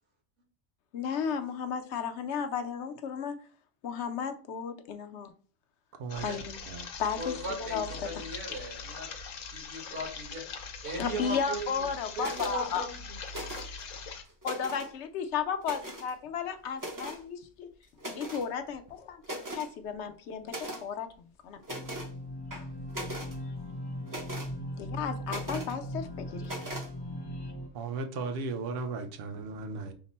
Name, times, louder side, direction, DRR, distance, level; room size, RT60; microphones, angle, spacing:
voice 1, 0.9-3.4 3.8-5.3 6.2-6.6 7.0-8.3 11.0-12.9 14.4-17.7 18.0-19.2 19.5-21.6 24.8-26.5, left 7 dB, 65° left, 8 dB, 0.9 m, -34 dB
sound 1, 6.1-14.2, left 5 dB, 90° left, 1.1 m, -42 dB
voice 2, 7.2-9.1 9.5-10.4 10.8-11.7 12.2-13.0, right 1 dB, 70° right, 0 dB, 1.9 m, -37 dB
sound 2, 12.2-12.6 13.3-13.8 14.2-14.9 15.6-16.1 16.8-17.2 18.0-18.5 18.9-19.0 19.2-19.7 20.5-20.8 21.6-22.1 22.5-23.3 24.1-24.5 25.3-25.7 26.4-26.9, right 1 dB, 20° right, 0.5 m, -39 dB
sound 3, 21.7-27.7, equal, 30° left, 0.5 m, -39 dB
voice 3, 27.7-29.9, right 4 dB, 55° right, 7 dB, 0.8 m, -36 dB
5.8 x 2.1 x 4.1 m, 0.41 s
omnidirectional pair, 1.3 m